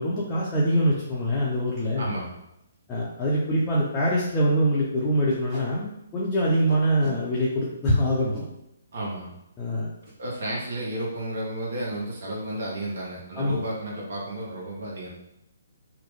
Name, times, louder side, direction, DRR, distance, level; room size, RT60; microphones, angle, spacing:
voice 1, 0.0-2.1 2.9-8.4 9.6-9.9 13.4-13.6, equal, 15° left, -7 dB, 0.5 m, -24 dB
Packing tape duct tape, 1.6-1.8 2.3-2.4 2.6-2.7 3.2-3.3 3.6-3.8 4.1-4.3 5.3-5.7 6.7-7.2 8.1-8.5 10.0-10.2 10.5-10.7 11.0-11.4, equal, 15° right, 0.9 m, -41 dB
voice 2, 2.0-2.3 8.9-9.3 10.0-15.1, right 1 dB, 55° right, -3 dB, 0.9 m, -32 dB
3.0 x 2.0 x 3.1 m, 0.86 s
figure-of-eight pair, 130°, 0 cm